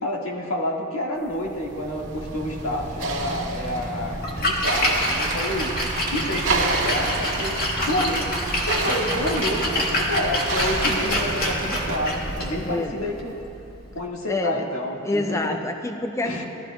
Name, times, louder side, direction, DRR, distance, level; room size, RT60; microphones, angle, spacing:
voice 1, 0.0-5.7 6.1-8.3 8.6-13.4 13.9-15.6 16.2-16.4, left 1 dB, 85° left, -2 dB, 1.7 m, -29 dB
sound 1, 1.3-12.8, right 2 dB, 70° right, 1.8 m, -30 dB
Splash splatter, 4.1-14.0, left 1 dB, 45° left, 1.8 m, -27 dB
Applause, 4.9-12.0, right 4 dB, 45° right, 1.4 m, -33 dB
voice 2, 12.6-13.1 14.3-14.7 15.0-16.4, left 2 dB, 15° left, 5 dB, 0.4 m, -27 dB
19.0 x 13.5 x 2.2 m, 2.8 s
head